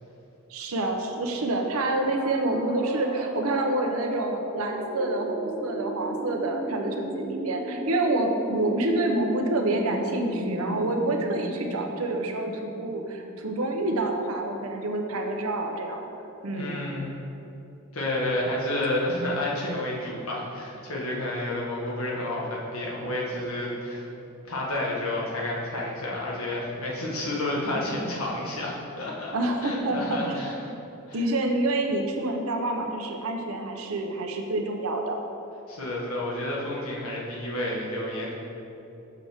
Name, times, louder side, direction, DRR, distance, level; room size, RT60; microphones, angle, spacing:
voice 1, 0.5-16.1 16.4-16.8 29.3-30.4 31.1-35.2, right 2 dB, 85° right, 3 dB, 0.7 m, -27 dB
sound 1, 1.8-13.6, equal, 20° right, 0.8 m, -36 dB
voice 2, 16.5-17.1 17.9-24.1 24.5-29.3 29.6-30.6 31.1-31.2 35.7-38.3, left 1 dB, 80° left, -4 dB, 1.4 m, -30 dB
6.7 x 6.2 x 3.5 m, 2.9 s
head